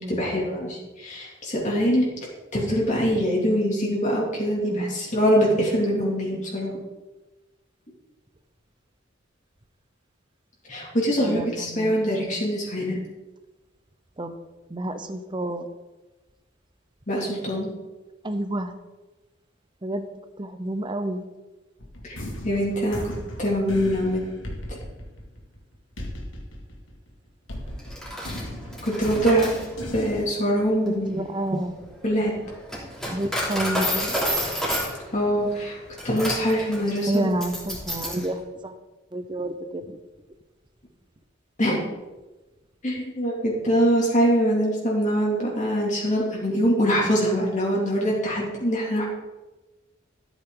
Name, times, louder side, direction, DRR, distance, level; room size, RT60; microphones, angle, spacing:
voice 1, 0.2-2.1 2.5-6.7 10.7-13.0 17.1-17.7 22.0-22.2 22.4-23.1 23.4-24.2 24.7-24.8 28.8-29.5 29.9-31.1 32.0-32.3 35.1-35.8 36.0-37.3 41.6-41.9 42.8-49.1, equal, 40° left, -3 dB, 2.9 m, -23 dB
voice 2, 4.6-4.9 11.2-11.9 12.2-12.4 14.2-14.3 14.7-15.7 18.2-18.7 19.8-20.1 20.4-21.3 30.9-32.0 33.1-34.2 37.1-38.8 39.1-40.0, right 1 dB, 25° right, 9 dB, 0.8 m, -30 dB
sound 1, 21.8-27.1 27.5-30.2, left 1 dB, 85° left, 2.3 m, -36 dB
Coin (dropping), 27.8-38.3, equal, 5° left, 3.1 m, -31 dB
13.5 x 8.5 x 3.9 m, 1.1 s
head